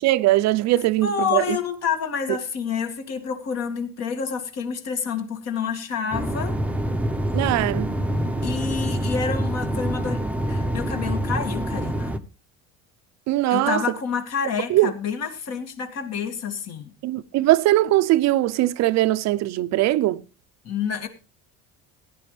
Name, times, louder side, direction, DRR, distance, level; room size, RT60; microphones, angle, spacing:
voice 1, 0.0-1.6 7.3-8.0 13.3-13.8 14.7-14.9 17.0-20.2, right 16 dB, 60° right, 0.7 m, -20 dB
voice 2, 1.0-6.6 8.4-10.2 10.5-12.2 13.5-16.9 20.6-21.1, left 6 dB, 55° left, 2.2 m, -28 dB
sound 1, 6.1-12.2, right 1 dB, 5° right, 0.8 m, -26 dB
16.5 x 10.0 x 3.3 m
cardioid pair, 115°, 31 cm